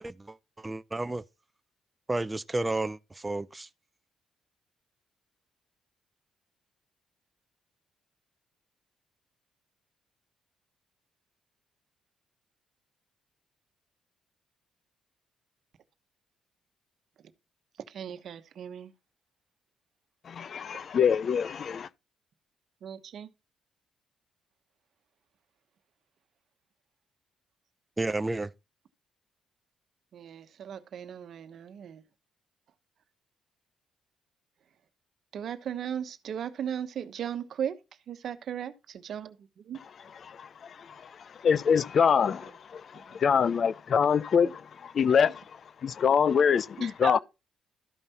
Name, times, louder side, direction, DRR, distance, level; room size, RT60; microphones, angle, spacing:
voice 1, 0.0-1.2 2.1-3.7 28.0-28.5, right 2 dB, 15° right, 0.5 m, -32 dB
voice 2, 17.9-18.9 22.8-23.3 30.1-32.0 35.3-37.8 38.1-39.8 42.3-42.4 42.9-43.2 44.4-44.5 46.8-47.2, right 9 dB, 65° right, 1.1 m, -37 dB
voice 3, 20.3-21.9 40.1-40.4 40.6-40.9 41.4-45.4 45.8-47.2, left 7 dB, 55° left, 0.4 m, -25 dB
13.0 x 5.4 x 4.3 m
cardioid pair, 90°, 0 cm